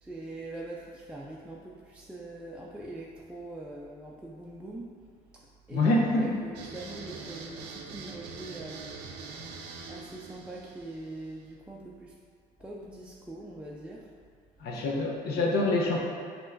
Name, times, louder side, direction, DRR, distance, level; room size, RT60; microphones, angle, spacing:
voice 1, 0.0-4.9 5.7-8.8 9.9-12.1 12.6-14.1, right 2 dB, 5° right, -5 dB, 0.3 m, -43 dB
voice 2, 5.7-6.3 14.6-16.0, left 2 dB, 70° left, -1 dB, 0.8 m, -26 dB
sound 1, 6.5-11.5, right 4 dB, 85° right, 0.5 m, -44 dB
5.4 x 3.0 x 2.6 m, 2.1 s
cardioid pair, 110°, 17 cm